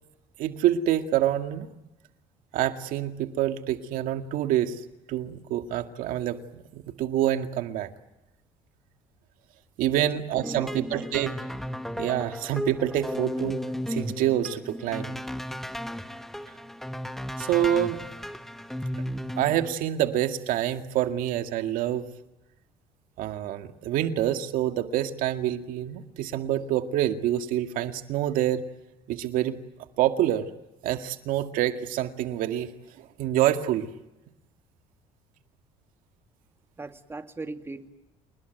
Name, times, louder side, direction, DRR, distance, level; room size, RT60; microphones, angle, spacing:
voice 1, 0.4-1.7 2.5-4.8 5.1-7.9 9.8-11.3 12.0-13.6 13.9-15.2 17.4-18.0 19.4-22.1 23.2-28.6 29.1-29.5 30.0-30.5 30.8-32.7 33.2-33.9, right 12 dB, 75° right, 7 dB, 2.1 m, -26 dB
sound 1, 10.3-19.7, equal, ahead, 1.4 m, -34 dB
voice 2, 10.5-11.2 36.8-37.9, right 3 dB, 15° right, 7 dB, 2.2 m, -39 dB
28.5 x 20.5 x 9.3 m, 0.97 s
cardioid pair, 110°, 14 cm